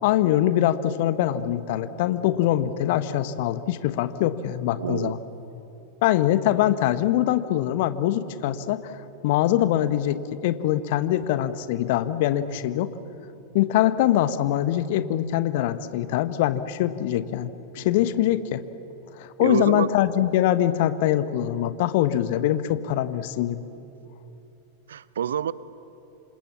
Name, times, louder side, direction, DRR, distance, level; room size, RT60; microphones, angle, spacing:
voice 1, 0.0-5.2 6.0-8.9 9.2-12.9 13.5-18.6 19.2-23.6, left 12 dB, 50° left, 13 dB, 1.2 m, -23 dB
voice 2, 4.8-5.2 17.7-17.9 19.4-20.0 24.9-25.5, right 9 dB, 65° right, 18 dB, 0.7 m, -27 dB
28.0 x 27.0 x 7.4 m, 2.9 s
figure-of-eight pair, 90°, 0 cm